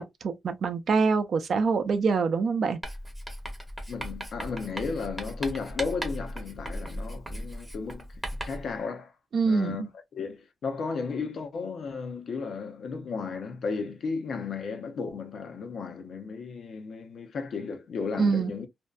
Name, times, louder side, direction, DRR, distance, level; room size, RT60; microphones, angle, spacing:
voice 1, 0.0-2.8 9.3-9.9 18.2-18.5, right 5 dB, 55° right, 0.5 m, -25 dB
Writing, 2.8-8.7, equal, 5° right, 0.7 m, -37 dB
voice 2, 3.9-8.1 8.4-9.1 9.5-9.8 10.1-18.7, left 5 dB, 60° left, 0.6 m, -34 dB
2.6 x 2.1 x 2.3 m
cardioid pair, 120°, 0 cm